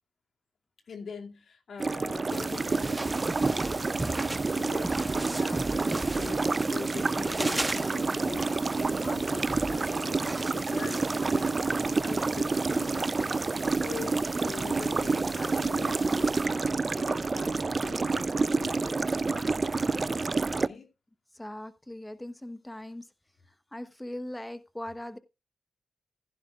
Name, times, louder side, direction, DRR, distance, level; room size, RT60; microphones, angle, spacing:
voice 1, 0.9-3.1 3.4-4.3 4.5-11.0 11.3-13.0 13.9-20.9, left 5 dB, 75° left, 2.4 m, -43 dB
sound 1, 1.8-20.7, right 3 dB, 45° right, 0.5 m, -28 dB
sound 2, 2.3-16.5, right 1 dB, 15° right, 1.7 m, -39 dB
voice 2, 21.3-23.1 23.5-25.2, left 1 dB, 15° left, 1.0 m, -40 dB
15.0 x 11.0 x 2.4 m
supercardioid pair, 45°, 0 cm